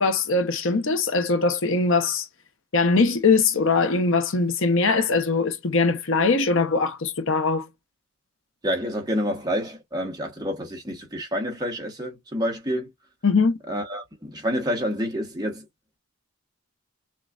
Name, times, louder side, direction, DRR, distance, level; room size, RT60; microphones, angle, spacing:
voice 1, 0.0-2.3 2.7-7.7 13.2-13.5, left 4 dB, 60° left, 0.8 m, -21 dB
voice 2, 8.6-12.9 13.7-15.6, equal, 20° right, 1.1 m, -28 dB
6.3 x 2.3 x 2.4 m
head